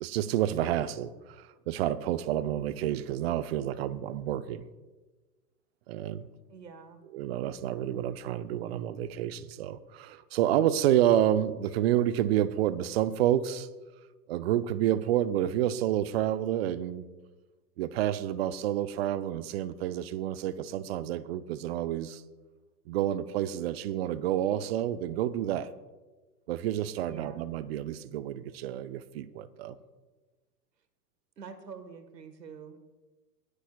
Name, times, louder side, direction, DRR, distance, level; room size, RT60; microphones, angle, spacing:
voice 1, 0.0-4.6 5.9-6.3 7.1-13.7 14.3-17.0 17.8-22.2 22.9-25.7 26.5-29.8, right 11 dB, 40° right, 15 dB, 0.6 m, -29 dB
voice 2, 6.5-7.0 27.1-27.5 31.4-32.8, right 6 dB, 85° right, 10 dB, 1.5 m, -46 dB
23.0 x 9.9 x 2.2 m, 1.2 s
hypercardioid pair, 110°, 49 cm